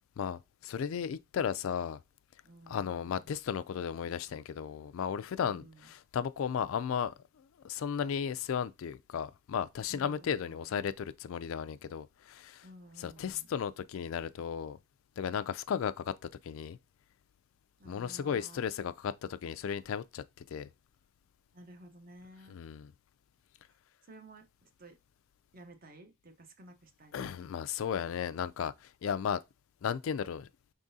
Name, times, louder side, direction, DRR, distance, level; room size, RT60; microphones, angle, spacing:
voice 1, 0.2-2.0 2.7-12.7 13.0-14.8 15.2-16.1 16.4-16.8 17.9-20.7 22.5-22.9 27.1-29.4 29.8-30.5, left 7 dB, 70° left, 0.3 m, -35 dB
voice 2, 2.4-3.2 5.3-5.8 9.9-10.6 12.6-13.5 17.8-18.6 21.5-22.6 24.1-25.0 25.5-27.3, right 1 dB, 40° right, 0.8 m, -54 dB
5.4 x 3.7 x 2.6 m
head